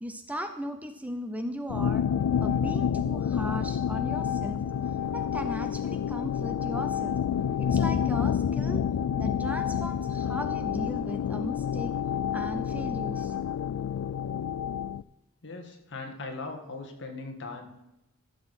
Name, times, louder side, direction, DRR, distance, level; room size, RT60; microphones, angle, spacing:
voice 1, 0.0-2.1 2.4-4.6 5.1-7.2 7.6-8.8 9.2-11.9 12.3-13.3, equal, 5° right, 7 dB, 0.6 m, -37 dB
sound 1, 1.7-15.0, left 8 dB, 85° left, 0.3 m, -29 dB
voice 2, 15.4-17.9, left 3 dB, 55° left, 3 dB, 1.7 m, -39 dB
13.5 x 6.7 x 4.3 m, 0.89 s
head